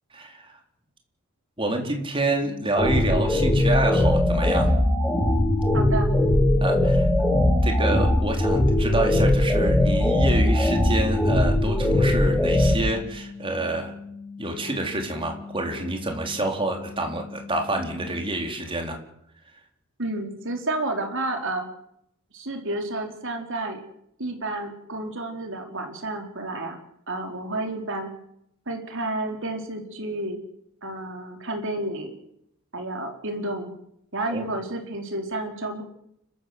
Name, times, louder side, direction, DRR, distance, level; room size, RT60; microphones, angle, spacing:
voice 1, 0.1-0.6 1.6-4.7 6.6-7.1 7.6-13.9 14.4-19.0 34.3-34.4, right 2 dB, 25° right, 3 dB, 4.0 m, -27 dB
sound 1, 2.4-18.3, left 4 dB, 80° left, 6.3 m, -41 dB
sound 2, 2.8-12.7, left 1 dB, ahead, 3.9 m, -20 dB
voice 2, 5.7-6.1 20.0-21.7 22.3-23.8 24.2-26.8 27.1-28.1 28.7-30.4 30.8-32.2 32.7-33.7 34.1-35.8, right 2 dB, 60° right, 4 dB, 4.4 m, -30 dB
30.0 x 14.0 x 8.0 m, 0.76 s
head